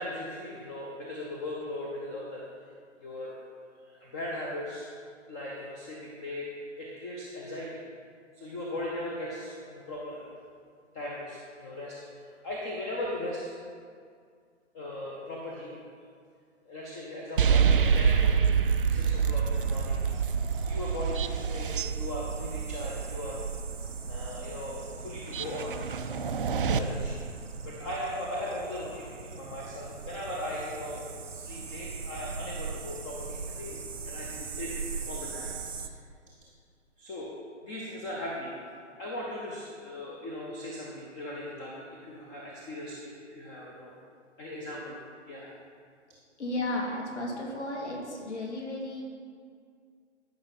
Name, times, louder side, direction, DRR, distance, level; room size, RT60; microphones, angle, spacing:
voice 1, 0.0-2.4 3.0-3.4 3.8-4.9 5.3-6.5 6.8-7.8 8.3-10.3 10.9-13.5 14.7-16.1 16.6-18.4 18.9-20.0 20.6-23.4 24.1-25.8 26.5-27.2 27.7-33.8 34.0-35.6 37.0-37.3 37.6-38.5 39.0-43.9 44.4-45.0 45.3-45.5, left 1 dB, 15° left, -3 dB, 0.7 m, -38 dB
sound 1, 17.4-26.8, right 6 dB, 45° right, 0.5 m, -27 dB
sound 2, 19.5-35.9, right 5 dB, 80° right, 0.8 m, -41 dB
voice 2, 46.4-49.0, left 1 dB, 65° left, -2 dB, 2.4 m, -34 dB
13.5 x 5.6 x 4.0 m, 2.2 s
figure-of-eight pair, 130°, 37 cm